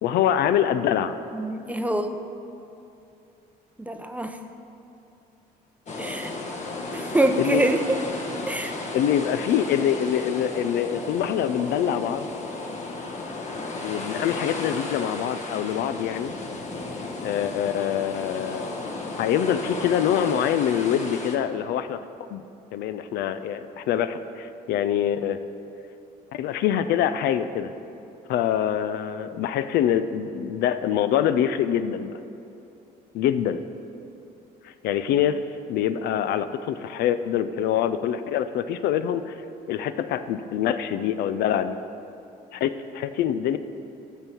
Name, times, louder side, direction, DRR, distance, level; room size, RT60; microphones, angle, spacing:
voice 1, 0.0-1.2 7.4-7.7 8.9-12.3 13.8-16.3 17.2-18.8 19.2-22.0 22.3-22.4 22.7-25.4 26.3-27.7 28.3-32.2 33.1-33.6 34.6-35.4 35.7-39.4 39.7-41.8 42.5-43.6, left 9 dB, 75° left, 11 dB, 0.5 m, -25 dB
voice 2, 1.3-2.2 3.8-4.4 6.0-6.3 6.9-8.0 8.5-8.8, right 1 dB, 10° right, 6 dB, 0.6 m, -25 dB
sound 1, 5.9-21.4, left 3 dB, 45° left, 1.2 m, -34 dB
12.5 x 4.6 x 6.9 m, 2.8 s
cardioid pair, 110°, 17 cm